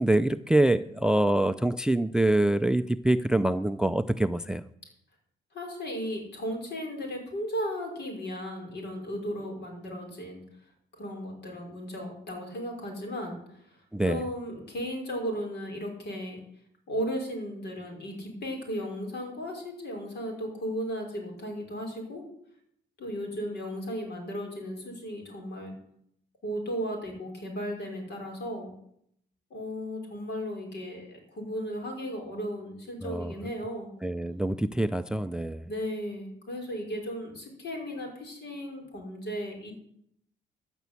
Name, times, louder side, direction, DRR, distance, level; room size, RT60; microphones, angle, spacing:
voice 1, 0.0-4.6 13.9-14.2 33.0-33.3 34.0-35.7, right 1 dB, 5° right, 14 dB, 0.4 m, -25 dB
voice 2, 5.5-10.4 11.0-16.4 16.9-22.2 23.0-25.8 26.4-28.7 29.5-33.9 35.7-39.7, equal, 60° left, 1 dB, 5.2 m, -35 dB
13.5 x 6.2 x 8.3 m, 0.73 s
cardioid pair, 90°, 20 cm